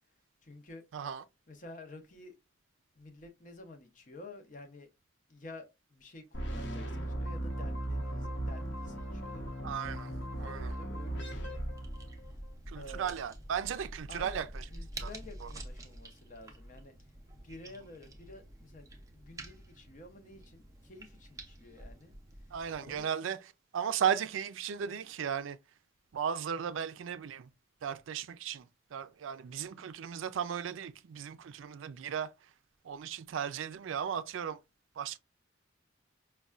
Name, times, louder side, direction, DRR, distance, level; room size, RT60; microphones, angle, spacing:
voice 1, 0.4-0.8 1.5-2.4 3.0-4.9 5.3-9.5 10.4-11.6 12.8-13.2 14.1-16.9 17.4-18.9 19.1-22.1 22.8-23.1, left 2 dB, 40° left, 0.6 m, -51 dB
voice 2, 0.9-1.2 9.6-10.1 10.4-10.8 12.7-14.6 15.0-15.1 15.4-15.5 22.5-23.4 23.7-25.6 26.1-27.5 27.8-28.6 28.9-32.3 32.8-34.6 35.0-35.2, right 8 dB, 85° right, 0.4 m, -36 dB
sound 1, 6.3-12.5, right 1 dB, 65° left, 0.9 m, -37 dB
sound 2, 10.9-23.0, right 1 dB, 15° right, 0.5 m, -48 dB
5.3 x 2.2 x 2.3 m
head